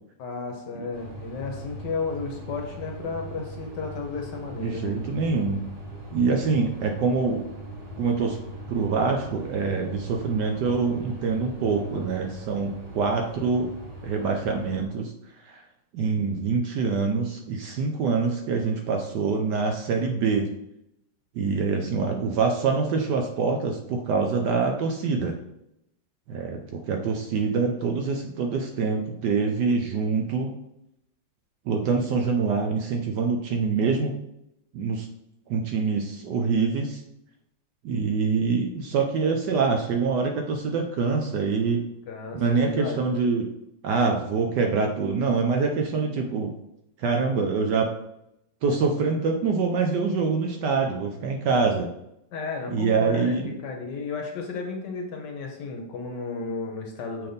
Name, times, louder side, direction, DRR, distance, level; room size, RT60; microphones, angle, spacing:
voice 1, 0.2-5.0 42.1-43.1 52.3-57.3, left 4 dB, 65° left, 2 dB, 1.3 m, -33 dB
sound 1, 0.9-14.8, right 1 dB, 25° right, 0.8 m, -40 dB
voice 2, 4.6-5.6 6.1-7.4 8.0-8.4 8.7-13.7 14.0-15.1 15.4-15.6 15.9-20.5 21.3-25.4 26.3-30.5 31.7-34.1 34.7-35.1 35.5-37.0 37.8-41.8 42.3-43.5 43.8-46.5 47.0-47.9 48.6-51.9 52.7-53.5, right 4 dB, 70° right, 3 dB, 1.1 m, -25 dB
6.7 x 3.5 x 3.9 m, 0.81 s
omnidirectional pair, 2.3 m